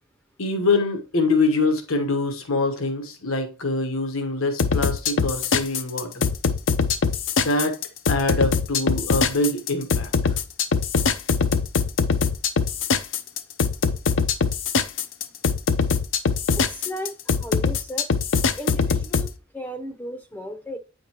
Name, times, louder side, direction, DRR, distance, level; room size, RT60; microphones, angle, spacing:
voice 1, 0.4-6.3 7.4-7.8 8.1-10.3, left 2 dB, 80° left, 1.2 m, -24 dB
sound 1, 4.6-19.3, left 5 dB, 60° left, 0.6 m, -22 dB
voice 2, 16.6-18.1 18.6-20.8, equal, 10° left, 0.7 m, -35 dB
8.5 x 5.1 x 2.9 m
head